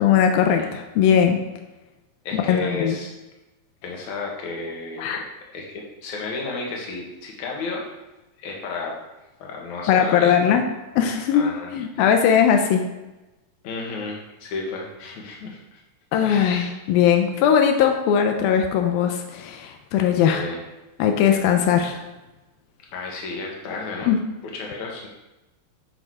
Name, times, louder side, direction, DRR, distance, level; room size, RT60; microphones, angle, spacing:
voice 1, 0.0-1.4 2.3-3.0 5.0-5.2 9.9-10.6 11.0-12.9 16.1-20.5 21.0-22.0 24.1-24.2, left 8 dB, 85° left, 5 dB, 2.7 m, -19 dB
voice 2, 2.2-3.1 3.8-5.2 5.5-7.9 8.4-9.0 9.4-10.4 11.3-11.7 13.6-15.8 16.2-16.8 20.3-20.6 22.9-24.1 24.5-25.1, left 3 dB, 60° left, -1 dB, 3.0 m, -32 dB
12.5 x 6.4 x 4.9 m, 1.0 s
omnidirectional pair, 4.1 m